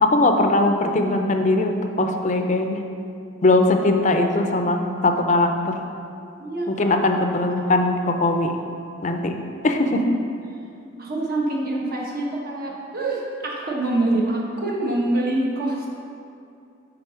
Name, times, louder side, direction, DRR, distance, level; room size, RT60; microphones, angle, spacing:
voice 1, 0.0-2.8 3.4-5.8 6.7-8.6 9.0-9.3 9.6-10.1, left 2 dB, 40° left, 5 dB, 0.5 m, -20 dB
voice 2, 6.4-7.1 11.0-15.9, right 2 dB, 50° right, -2 dB, 1.2 m, -25 dB
8.0 x 4.0 x 5.7 m, 2.5 s
head